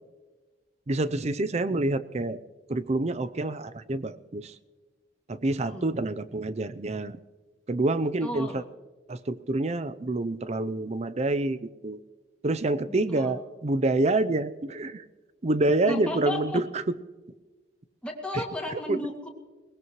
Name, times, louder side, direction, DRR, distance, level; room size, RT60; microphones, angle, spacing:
voice 1, 0.9-2.4 2.7-4.5 5.3-7.2 7.7-8.6 9.1-12.0 12.4-15.0 15.4-17.0 18.3-18.4 18.9-19.0, right 2 dB, 35° right, 13 dB, 0.6 m, -27 dB
voice 2, 8.2-8.6 12.9-13.4 15.9-16.6 18.0-19.3, left 1 dB, 5° left, -1 dB, 2.2 m, -34 dB
22.0 x 19.0 x 3.1 m, 1.3 s
head